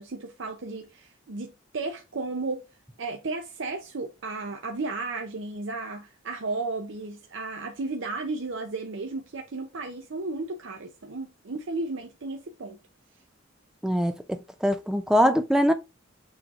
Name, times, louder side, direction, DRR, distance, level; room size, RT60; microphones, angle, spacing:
voice 1, 0.0-2.6 3.0-12.8, right 3 dB, 65° right, 0.6 m, -34 dB
voice 2, 13.8-15.7, equal, 5° right, 0.4 m, -23 dB
6.2 x 3.1 x 2.4 m
head